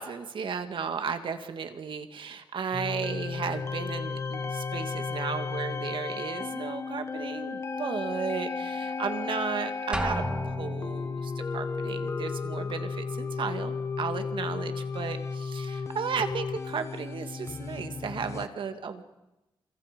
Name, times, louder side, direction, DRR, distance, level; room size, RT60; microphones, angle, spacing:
voice 1, 0.0-19.0, right 6 dB, 70° right, 7 dB, 2.2 m, -34 dB
sound 1, 2.7-18.5, left 4 dB, 30° left, 1.2 m, -34 dB
Drum, 9.9-11.1, right 1 dB, 10° right, 2.6 m, -32 dB
30.0 x 28.0 x 5.3 m, 0.98 s
wide cardioid pair, 145°, 9 cm